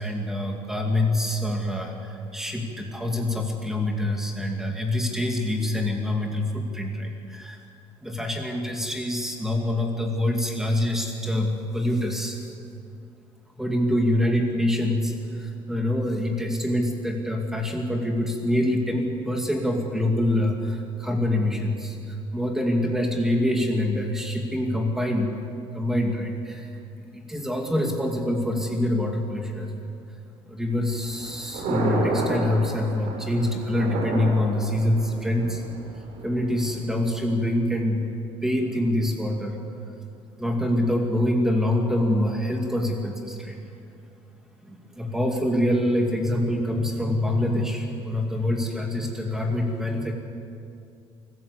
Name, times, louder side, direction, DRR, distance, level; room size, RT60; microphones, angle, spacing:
voice 1, 0.0-7.6 8.0-12.4 13.5-25.4 25.7-26.7 27.1-29.7 30.5-35.6 36.2-38.1 38.4-39.6 40.4-43.6 44.6-50.1, left 1 dB, 5° right, 1 dB, 2.6 m, -25 dB
Thunder, 30.8-36.8, right 2 dB, 90° right, 5.6 m, -31 dB
24.0 x 15.0 x 8.4 m, 2.5 s
cardioid pair, 165°, 10 cm